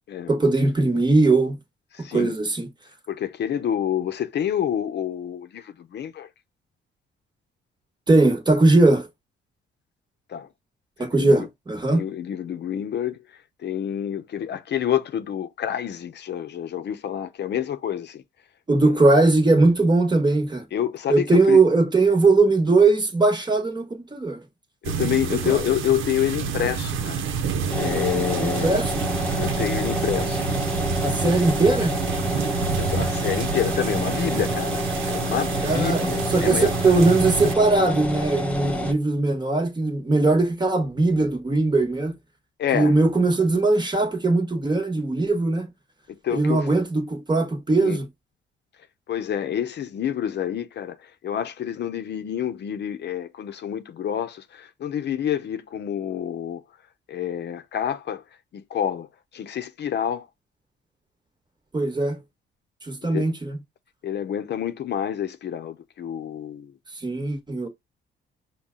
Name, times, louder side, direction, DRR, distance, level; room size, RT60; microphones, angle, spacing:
voice 1, 0.3-1.6 2.1-2.7 8.1-9.1 11.0-12.0 18.7-20.7 21.1-24.4 25.4-25.6 28.4-29.0 31.0-31.9 35.6-36.0 36.3-42.2 42.7-45.7 46.3-48.0 61.7-62.2 62.8-63.6 67.0-67.7, right 3 dB, 20° right, 1.3 m, -20 dB
voice 2, 1.9-2.3 3.1-6.3 10.3-10.5 11.0-11.5 11.9-13.2 13.6-18.2 18.8-18.9 20.7-21.6 24.8-27.2 27.7-28.8 29.4-30.4 31.2-31.4 32.8-36.7 42.6-43.0 46.1-46.7 47.8-48.0 49.1-56.6 57.1-58.2 58.5-59.1 59.3-60.3 63.1-63.3 64.0-66.7, left 10 dB, 60° left, 0.7 m, -28 dB
sound 1, 24.8-37.5, right 6 dB, 80° right, 0.7 m, -28 dB
sound 2, 27.7-38.9, equal, 5° left, 1.1 m, -28 dB
5.5 x 2.3 x 3.7 m
cardioid pair, 90°, 20 cm